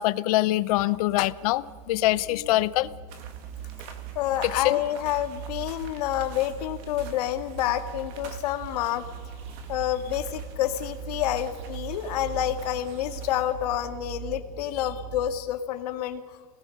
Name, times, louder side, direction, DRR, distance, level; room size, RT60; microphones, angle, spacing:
voice 1, 0.0-2.9 4.5-4.8, left 17 dB, 70° left, 16 dB, 0.8 m, -24 dB
sound 1, 1.0-15.4, right 8 dB, 80° right, 4.0 m, -40 dB
sound 2, 3.1-14.0, right 6 dB, 50° right, 2.5 m, -49 dB
voice 2, 4.2-9.0 9.7-16.2, left 12 dB, 90° left, 7 dB, 2.3 m, -28 dB
29.0 x 20.0 x 6.6 m, 1.5 s
supercardioid pair, 170°, 20 cm